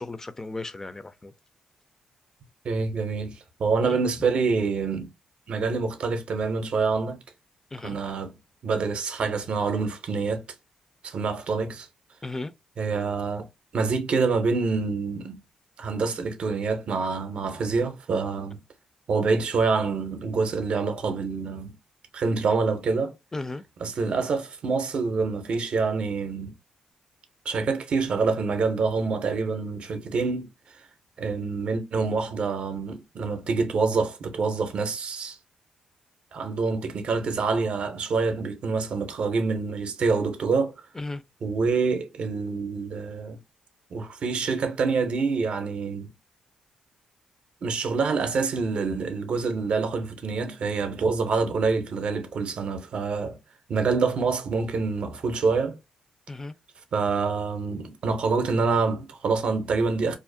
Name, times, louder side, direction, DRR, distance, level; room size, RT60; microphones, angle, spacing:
voice 1, 0.0-1.3 3.8-4.0 7.7-8.0 12.2-12.5 23.3-23.6 40.9-41.2 56.3-56.5, left 2 dB, 20° left, 0.3 m, -35 dB
voice 2, 2.6-5.1 5.5-7.2 7.8-8.3 8.6-10.4 11.0-11.9 12.8-13.5 13.7-15.4 15.8-18.6 19.1-21.8 22.1-23.1 23.8-26.5 27.5-30.5 31.2-35.4 36.3-40.7 41.4-43.4 43.9-46.1 47.6-53.4 53.7-55.8 56.9-60.2, right 4 dB, 60° right, 0.5 m, -26 dB
2.4 x 2.0 x 2.5 m
cardioid pair, 70°, 2 cm